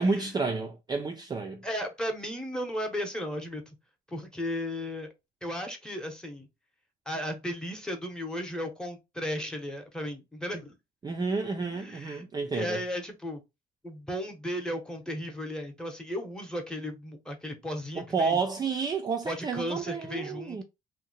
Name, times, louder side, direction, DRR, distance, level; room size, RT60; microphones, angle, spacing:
voice 1, 0.0-1.6 11.0-12.8 18.0-20.6, right 4 dB, 25° right, 0.4 m, -30 dB
voice 2, 1.6-3.8 4.1-5.1 5.4-6.5 7.1-10.8 11.7-12.2 12.5-13.4 13.8-18.4 19.2-20.6, equal, 5° left, 0.8 m, -35 dB
2.7 x 2.1 x 3.9 m
cardioid pair, 110°, 17 cm